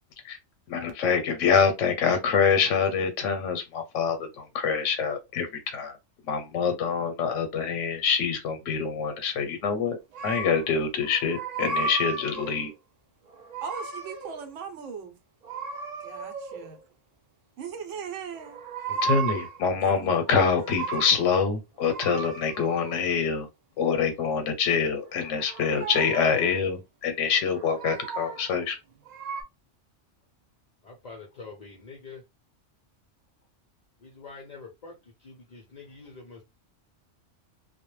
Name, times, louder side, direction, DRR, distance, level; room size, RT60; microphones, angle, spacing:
voice 1, 0.7-6.0 6.3-10.0 10.2-12.7 19.0-23.5 23.8-28.8, left 6 dB, 90° left, 0.9 m, -25 dB
sound 1, 10.1-10.7 11.0-12.7 13.3-14.5 15.4-16.8 18.3-19.6 20.1-21.3 21.8-23.1 24.9-26.6 27.4-28.5 29.1-29.4, right 4 dB, 60° right, 0.4 m, -35 dB
voice 2, 13.6-15.2 16.0-16.8 17.6-18.6 19.8-20.3, right 6 dB, 80° right, 1.0 m, -39 dB
voice 3, 30.8-32.2 34.0-36.4, left 4 dB, 50° left, 0.5 m, -45 dB
2.2 x 2.0 x 3.0 m
omnidirectional pair, 1.2 m